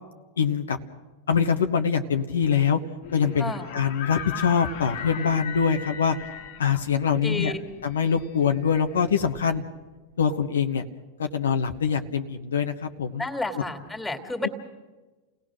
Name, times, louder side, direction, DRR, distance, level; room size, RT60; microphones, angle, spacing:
voice 1, 0.4-0.8 1.3-2.8 3.1-6.2 6.6-7.5 7.8-9.6 10.2-10.8 11.2-13.2 14.4-14.5, left 6 dB, 85° left, 6 dB, 1.1 m, -24 dB
sound 1, 3.0-9.9, left 7 dB, 65° left, 1.8 m, -39 dB
voice 2, 7.2-7.7 13.2-14.5, left 2 dB, 10° left, 6 dB, 2.5 m, -31 dB
28.5 x 17.5 x 6.3 m, 1.2 s
hypercardioid pair, 100°, 0 cm